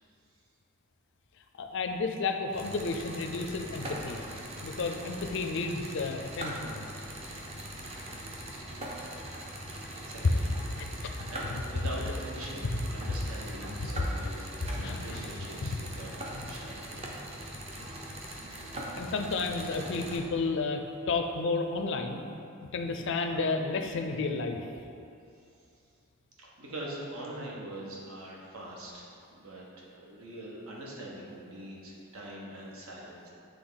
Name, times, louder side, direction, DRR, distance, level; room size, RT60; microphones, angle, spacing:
voice 1, 1.6-4.2 4.6-6.8 10.2-12.1 12.3-12.8 13.8-13.9 14.2-14.3 14.7-15.7 16.3-16.5 19.0-22.2 22.7-24.6, left 3 dB, 55° left, 5 dB, 0.4 m, -32 dB
sound 1, 2.5-20.2, right 1 dB, 30° right, 0.7 m, -41 dB
voice 2, 9.7-10.5 10.9-16.9 26.4-33.3, right 1 dB, 75° right, -4 dB, 1.1 m, -43 dB
8.0 x 3.4 x 3.9 m, 2.5 s
head